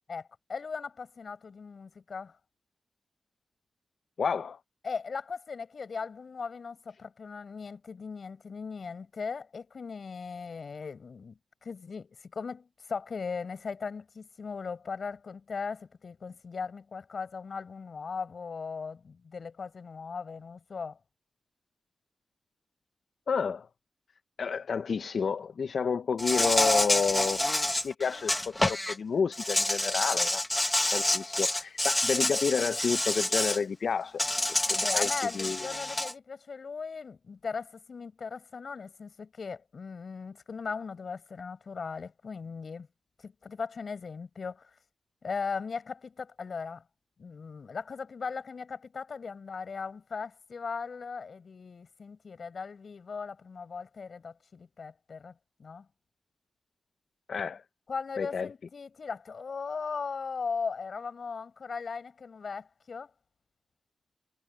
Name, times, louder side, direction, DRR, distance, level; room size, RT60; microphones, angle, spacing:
voice 1, 0.1-2.3 4.8-21.0 34.7-42.9 43.2-44.7 45.2-46.8 47.2-55.3 55.6-55.9 57.9-63.1, left 5 dB, 60° left, 4.8 m, -38 dB
voice 2, 4.2-4.6 23.3-23.7 24.4-27.4 27.8-30.4 30.9-34.2 34.7-35.7 57.3-57.6 58.2-58.5, left 6 dB, 75° left, 0.5 m, -30 dB
Insect, 26.2-28.9 29.3-33.6 34.2-36.1, left 1 dB, 10° left, 0.7 m, -28 dB
wide cardioid pair, 140°, 0 cm